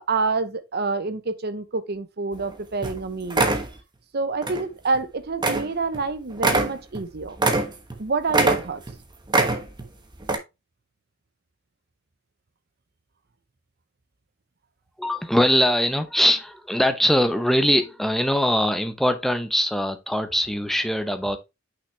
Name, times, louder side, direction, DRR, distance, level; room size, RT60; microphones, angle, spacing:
voice 1, 0.0-3.5 4.1-7.4 8.0-8.8, right 4 dB, 55° right, 0.8 m, -27 dB
sound 1, 2.4-2.5 2.8-3.0 3.3-3.7 4.4-4.6 4.9-5.0 5.4-5.7 5.9-6.0 6.4-8.0 8.3-9.0 9.3-9.9 10.2-10.4, right 3 dB, 20° right, 1.1 m, -22 dB
voice 2, 15.0-21.4, left 1 dB, ahead, 0.7 m, -22 dB
6.1 x 5.9 x 3.2 m
head